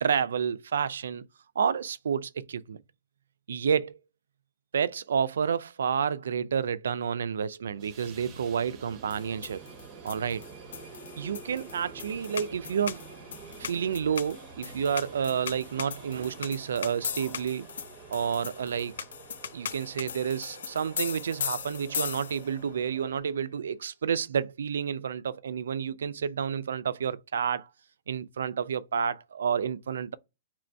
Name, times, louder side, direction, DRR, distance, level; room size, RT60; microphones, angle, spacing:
voice 1, 0.0-1.3 1.6-2.8 3.5-4.0 4.7-9.6 10.0-10.5 11.2-13.0 13.6-17.7 18.1-18.9 19.5-27.7 28.1-30.2, right 7 dB, 90° right, 0.3 m, -30 dB
sound 1, 7.7-23.2, right 5 dB, 25° right, 0.8 m, -48 dB
sound 2, 9.1-22.6, left 8 dB, 80° left, 0.3 m, -39 dB
3.0 x 2.6 x 4.3 m
hypercardioid pair, 170°, 0 cm